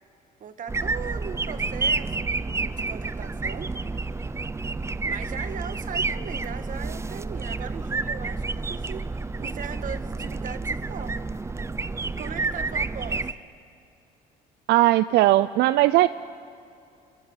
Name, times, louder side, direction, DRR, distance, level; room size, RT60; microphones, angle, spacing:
voice 1, 0.4-3.7 5.0-9.1 9.4-11.3 12.0-13.3, right 8 dB, 50° right, 10 dB, 1.7 m, -39 dB
sound 1, 0.7-13.3, right 3 dB, 15° right, 0.6 m, -30 dB
voice 2, 14.7-16.1, right 16 dB, 80° right, 14 dB, 0.5 m, -18 dB
28.5 x 15.5 x 9.7 m, 2.6 s
cardioid pair, 110°, 17 cm